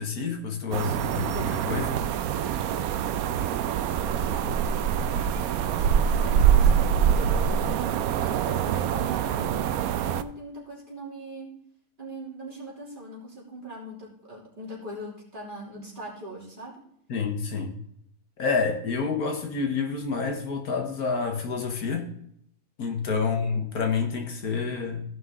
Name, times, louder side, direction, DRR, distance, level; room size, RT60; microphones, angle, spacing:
voice 1, 0.0-2.0 17.1-17.8 18.4-22.1 22.8-25.0, left 5 dB, 75° left, 1.8 m, -28 dB
sound 1, 0.7-10.2, right 8 dB, 75° right, 1.0 m, -25 dB
voice 2, 4.0-11.5 12.0-16.8 23.0-23.3, right 2 dB, 30° right, 3.1 m, -41 dB
15.0 x 5.7 x 3.7 m
omnidirectional pair, 1.6 m